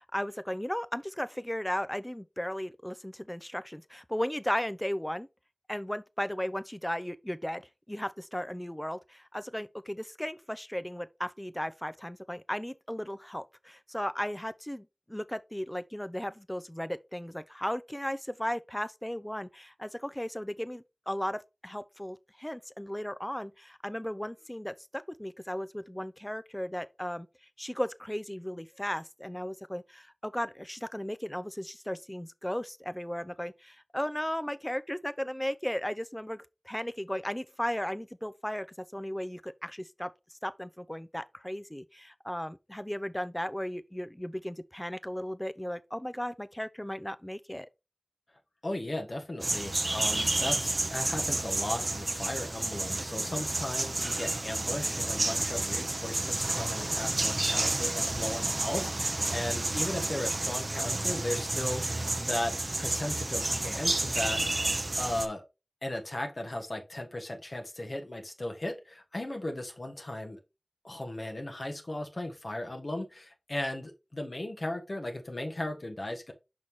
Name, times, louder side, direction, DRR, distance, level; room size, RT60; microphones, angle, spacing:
voice 1, 0.0-5.3 5.7-7.6 7.9-27.3 27.6-38.7 38.9-47.7, equal, 15° left, 0.5 m, -36 dB
voice 2, 48.6-64.4 65.0-65.4 65.8-70.4 70.8-76.3, left 1 dB, 65° left, 1.3 m, -36 dB
sound 1, 49.4-65.3, right 2 dB, 60° right, 0.6 m, -30 dB
6.3 x 5.6 x 3.1 m
wide cardioid pair, 40°, 0 cm